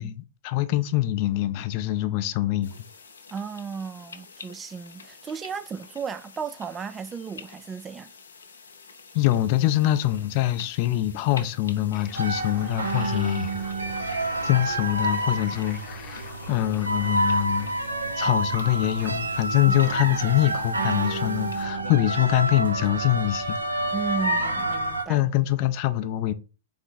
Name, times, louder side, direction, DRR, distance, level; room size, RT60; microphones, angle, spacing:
voice 1, 0.0-2.7 9.1-13.5 14.4-17.7 18.2-23.6 25.1-26.3, left 14 dB, 50° left, 0.5 m, -24 dB
sound 1, 2.6-21.7, left 5 dB, 80° left, 0.8 m, -48 dB
voice 2, 3.3-8.1 19.7-19.8 23.9-25.2, right 6 dB, 20° right, 0.3 m, -34 dB
sound 2, 11.9-17.7, left 6 dB, 30° left, 0.8 m, -46 dB
sound 3, 12.1-25.0, right 2 dB, 90° right, 0.7 m, -28 dB
3.7 x 3.4 x 4.1 m
hypercardioid pair, 105°, 0 cm